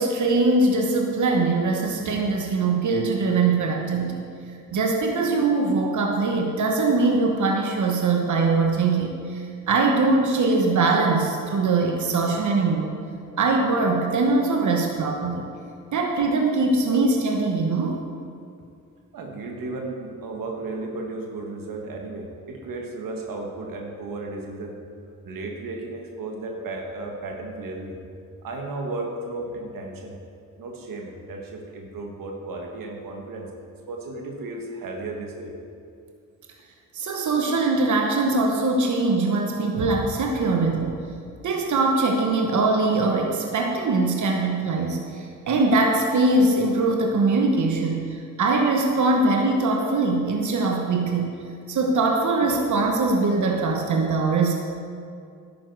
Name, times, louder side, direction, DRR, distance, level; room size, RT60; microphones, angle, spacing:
voice 1, 0.0-4.2 4.7-12.9 13.4-15.5 15.9-18.0 36.9-41.0 41.4-51.4 51.7-54.5, right 3 dB, 60° right, 1 dB, 1.2 m, -22 dB
voice 2, 19.1-24.8 25.2-28.0 28.4-30.2 30.6-33.5 33.9-35.5, right 2 dB, 85° right, 1 dB, 1.5 m, -34 dB
11.0 x 8.6 x 4.7 m, 2.4 s
cardioid pair, 60°, 33 cm